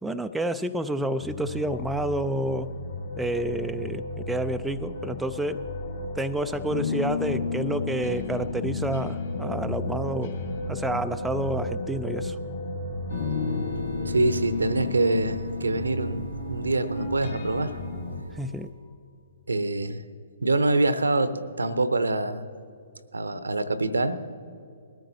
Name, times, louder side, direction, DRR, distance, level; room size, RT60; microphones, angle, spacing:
voice 1, 0.0-2.7 3.2-5.7 6.2-10.4 10.7-12.4 18.3-18.7, right 1 dB, 5° right, 7 dB, 0.4 m, -29 dB
sound 1, 1.2-18.2, left 3 dB, 55° left, 2.4 m, -32 dB
sound 2, 13.1-18.7, right 3 dB, 75° left, 3.7 m, -52 dB
voice 2, 13.7-17.8 19.5-20.0 20.4-22.5 23.1-24.2, right 2 dB, 70° right, 13 dB, 0.8 m, -25 dB
20.5 x 14.0 x 2.8 m, 2.4 s
figure-of-eight pair, 125°, 0 cm